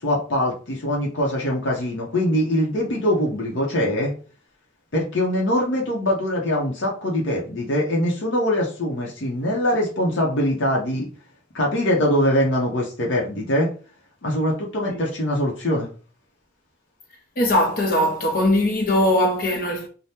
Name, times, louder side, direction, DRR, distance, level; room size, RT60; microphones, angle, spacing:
voice 1, 0.0-4.1 4.9-11.1 11.5-13.7 14.2-15.9, left 1 dB, 85° left, 0.8 m, -23 dB
voice 2, 17.4-19.9, left 1 dB, 50° left, 0.7 m, -20 dB
2.8 x 2.1 x 3.4 m
head